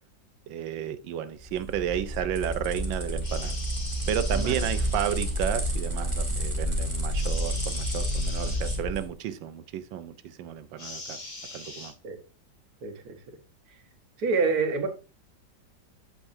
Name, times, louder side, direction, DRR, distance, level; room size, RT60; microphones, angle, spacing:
voice 1, 0.5-3.6 4.1-11.2 11.5-11.9, right 10 dB, 80° right, 1.4 m, -32 dB
sound 1, 1.4-9.1, equal, 15° right, 1.4 m, -29 dB
sound 2, 3.2-5.4 7.1-8.8 10.8-11.9, left 2 dB, 70° left, 3.3 m, -41 dB
voice 2, 12.8-13.2 14.2-14.9, right 4 dB, 55° right, 1.6 m, -27 dB
8.2 x 7.0 x 2.6 m
omnidirectional pair, 2.1 m